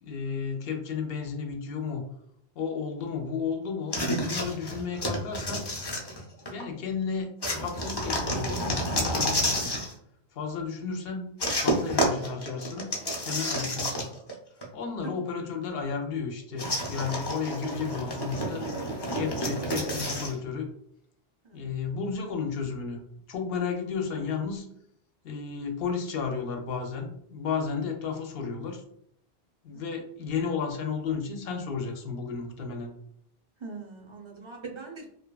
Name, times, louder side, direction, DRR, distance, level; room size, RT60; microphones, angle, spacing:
voice 1, 0.0-2.0 2.5-5.7 6.5-9.7 10.3-11.3 11.6-12.9 13.2-14.1 14.7-18.7 19.1-20.7 21.5-23.0 23.3-24.7 25.2-28.9 29.6-32.9, left 5 dB, 75° left, 4 dB, 0.8 m, -33 dB
sound 1, 3.9-6.6 7.4-9.9 11.4-14.3 14.6-14.7 16.6-20.3, equal, 40° left, 0.4 m, -30 dB
voice 2, 33.6-35.1, right 4 dB, 45° right, 0 dB, 0.4 m, -41 dB
2.8 x 2.2 x 2.2 m, 0.72 s
omnidirectional pair, 1.0 m